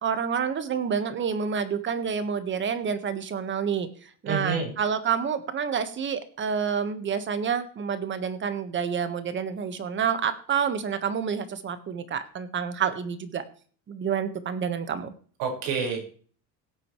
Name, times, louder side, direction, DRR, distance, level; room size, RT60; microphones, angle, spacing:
voice 1, 0.0-3.9 4.2-13.4 13.9-15.1, right 7 dB, 35° right, 10 dB, 1.5 m, -28 dB
voice 2, 4.3-4.7 15.4-16.0, right 5 dB, 90° right, 2 dB, 5.5 m, -28 dB
18.0 x 8.0 x 3.2 m, 0.43 s
cardioid pair, 145°, 35 cm